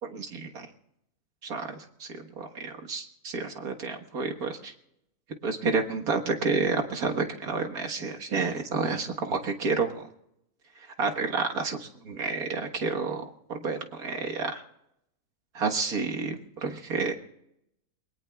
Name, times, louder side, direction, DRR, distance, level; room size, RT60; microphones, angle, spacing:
voice 1, 0.0-0.7 1.4-4.7 5.4-10.0 11.0-13.2 13.5-14.6 15.5-17.1, right 4 dB, 70° right, 3 dB, 1.9 m, -30 dB
28.5 x 22.0 x 2.3 m, 0.80 s
omnidirectional pair, 1.6 m